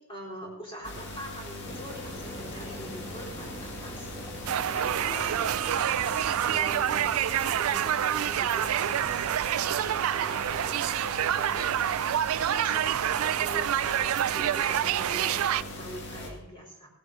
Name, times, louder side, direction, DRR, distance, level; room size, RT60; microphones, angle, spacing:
voice 1, 0.0-4.1 4.7-6.1 6.4-7.0 7.4-12.1 12.5-12.8 13.1-16.9, equal, 25° left, -3 dB, 4.0 m, -43 dB
sound 1, 0.8-16.3, left 1 dB, 55° left, 2.2 m, -41 dB
sound 2, 1.6-7.5, equal, 10° left, 1.5 m, -43 dB
sound 3, 4.5-15.6, right 11 dB, 85° right, 0.3 m, -27 dB
17.0 x 8.4 x 4.9 m, 0.88 s
head